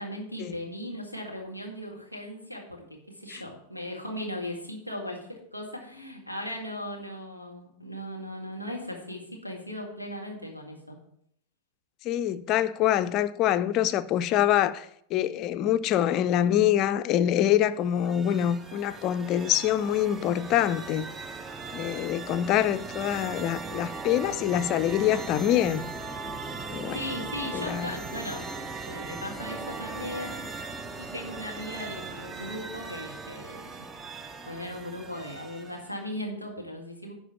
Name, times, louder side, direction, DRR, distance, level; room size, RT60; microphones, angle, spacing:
voice 1, 0.0-11.0 26.9-28.5 28.9-30.4 31.0-33.9 34.4-37.1, left 1 dB, 90° right, 1.9 m, -38 dB
voice 2, 12.0-14.9 15.1-21.1 21.7-25.9 26.7-27.0 27.5-27.9, left 11 dB, 35° left, 0.4 m, -25 dB
sound 1, 17.8-36.0, right 3 dB, 15° right, 0.6 m, -39 dB
11.0 x 4.4 x 5.8 m
figure-of-eight pair, 90°, 0 cm